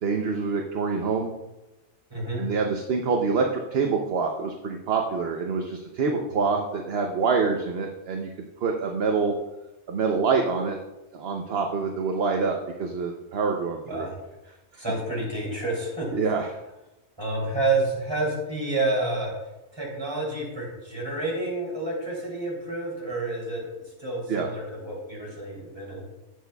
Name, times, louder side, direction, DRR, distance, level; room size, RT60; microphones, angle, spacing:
voice 1, 0.0-1.3 2.4-8.3 8.6-9.3 9.9-10.8 11.1-14.1 16.1-16.5 24.3-24.5, right 4 dB, 55° right, 3 dB, 0.9 m, -26 dB
voice 2, 2.1-2.4 6.4-6.5 13.9-14.1 14.8-16.1 17.2-19.3 19.7-23.6 24.0-26.1, right 2 dB, 20° right, -4 dB, 3.1 m, -29 dB
17.0 x 6.4 x 2.3 m, 1.0 s
omnidirectional pair, 1.4 m